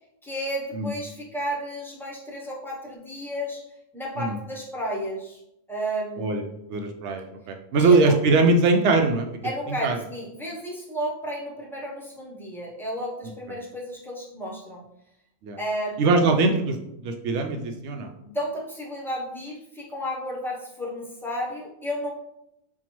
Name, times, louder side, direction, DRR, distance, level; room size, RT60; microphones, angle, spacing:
voice 1, 0.2-3.6 3.9-5.4 5.7-6.5 7.8-8.0 9.4-14.8 15.6-16.2 18.2-22.1, equal, 5° left, -3 dB, 0.5 m, -32 dB
voice 2, 6.7-9.3 9.7-10.0 13.2-13.6 15.4-15.6 16.0-16.8 17.0-18.1, right 3 dB, 70° right, 4 dB, 0.8 m, -22 dB
5.5 x 2.3 x 3.0 m, 0.81 s
omnidirectional pair, 1.3 m